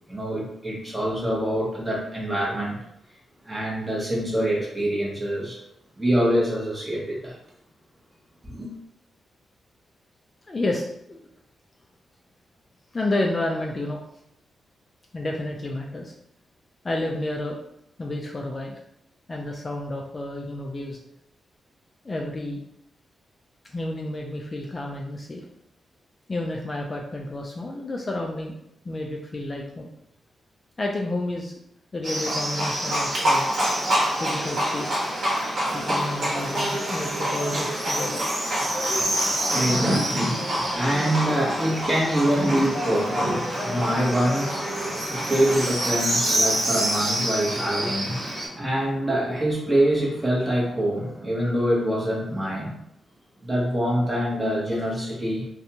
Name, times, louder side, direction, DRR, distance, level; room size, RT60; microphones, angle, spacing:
voice 1, 0.1-2.8 3.4-5.6 6.0-7.4 8.4-8.7 38.1-38.4 38.6-52.8 53.4-55.5, equal, 20° right, -4 dB, 0.9 m, -25 dB
voice 2, 10.5-11.2 12.9-14.0 15.1-16.1 16.8-17.6 18.0-18.8 19.3-21.0 22.0-22.6 23.7-25.4 26.3-28.6 28.8-29.9 30.8-31.6 31.9-33.6 34.2-35.0 35.7-38.2, left 2 dB, 30° left, 0 dB, 0.3 m, -30 dB
Livestock farm animals working animals, 32.0-48.5, right 1 dB, 60° right, 1.2 m, -26 dB
2.6 x 2.2 x 2.8 m, 0.77 s
cardioid pair, 105°, 0 cm